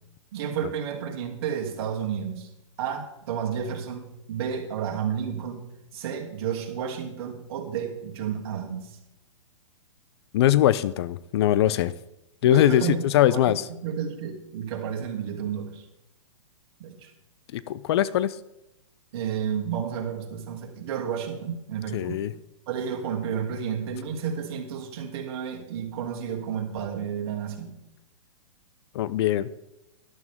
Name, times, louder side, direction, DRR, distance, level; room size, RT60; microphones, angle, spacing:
voice 1, 0.3-2.5 2.8-5.7 5.9-9.0 12.4-13.0 13.3-15.8 16.8-17.1 19.1-22.2 22.7-27.8, right 7 dB, 50° right, 1 dB, 2.7 m, -31 dB
voice 2, 10.3-11.9 12.4-13.7 17.5-18.4 21.9-22.3 28.9-29.5, left 12 dB, 50° left, 17 dB, 0.6 m, -22 dB
13.0 x 11.5 x 3.6 m, 0.90 s
hypercardioid pair, 125°, 17 cm